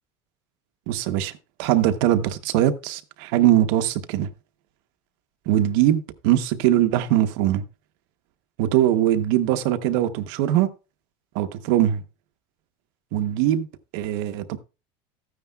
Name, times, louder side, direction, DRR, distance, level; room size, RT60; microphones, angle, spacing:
voice 1, 0.9-1.3 1.6-4.3 5.5-7.6 8.6-10.7 11.3-12.0 13.1-13.7 13.9-14.6, right 12 dB, 70° right, 0.9 m, -21 dB
13.5 x 9.6 x 2.3 m
cardioid pair, 170°, 12 cm